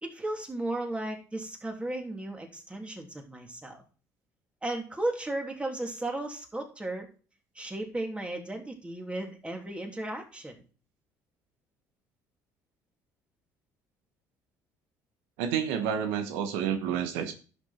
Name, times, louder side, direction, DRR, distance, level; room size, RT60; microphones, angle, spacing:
voice 1, 0.0-3.8 4.6-7.1 7.5-10.5, right 1 dB, 15° right, 2 dB, 3.1 m, -35 dB
voice 2, 15.4-17.3, right 8 dB, 90° right, 7 dB, 1.2 m, -29 dB
11.0 x 7.1 x 4.4 m, 0.37 s
supercardioid pair, 80°, 8 cm